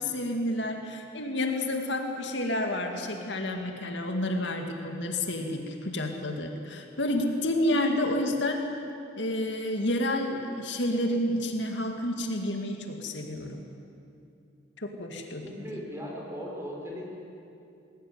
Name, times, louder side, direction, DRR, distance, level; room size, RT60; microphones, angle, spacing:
voice 1, 0.0-8.6 9.2-13.6 14.8-15.4, left 1 dB, 75° left, 3 dB, 2.3 m, -30 dB
voice 2, 15.4-17.0, equal, 15° right, -2 dB, 4.9 m, -38 dB
20.5 x 17.5 x 9.6 m, 2.6 s
head